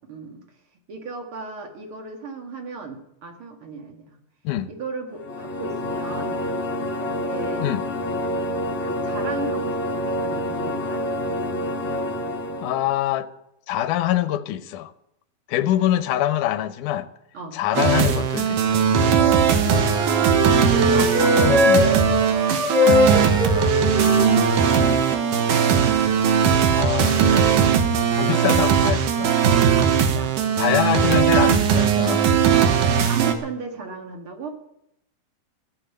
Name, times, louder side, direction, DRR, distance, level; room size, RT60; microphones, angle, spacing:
voice 1, 0.1-0.4 0.9-4.2 4.7-6.3 6.8-7.7 8.7-11.1 15.6-16.0 17.3-17.6 19.3-22.0 22.5-24.3 29.7-30.4 33.1-34.5, right 4 dB, 45° right, 2.3 m, -36 dB
sound 1, 5.1-12.9, left 1 dB, 30° left, 1.3 m, -27 dB
voice 2, 12.6-13.3 13.7-14.9 15.5-17.1 17.5-18.8 21.5-21.9 26.7-27.7 28.1-29.5 30.6-32.2, left 13 dB, 75° left, 2.2 m, -24 dB
sound 2, 17.7-33.3, right 7 dB, 70° right, 2.6 m, -19 dB
Wind instrument woodwind instrument, 19.1-25.5, left 2 dB, 30° right, 6.7 m, -22 dB
15.0 x 7.8 x 9.0 m
omnidirectional pair, 3.9 m